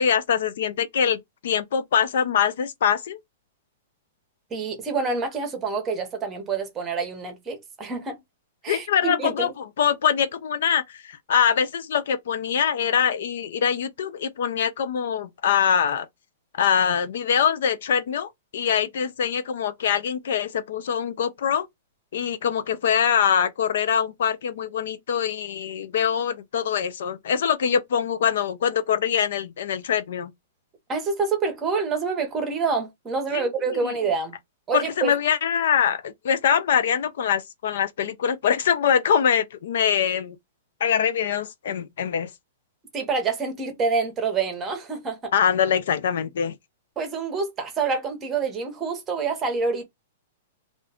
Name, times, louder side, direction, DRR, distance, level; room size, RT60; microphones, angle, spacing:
voice 1, 0.0-3.2 8.7-16.1 16.6-21.7 22.1-30.3 33.3-33.9 34.7-40.4 40.8-42.3 45.3-46.6, left 8 dB, 65° left, 0.4 m, -23 dB
voice 2, 4.5-8.2 8.6-9.5 30.9-34.3 34.7-35.1 42.9-45.3 47.0-49.8, right 4 dB, 15° right, 0.8 m, -27 dB
2.5 x 2.3 x 3.4 m
hypercardioid pair, 170°, 0 cm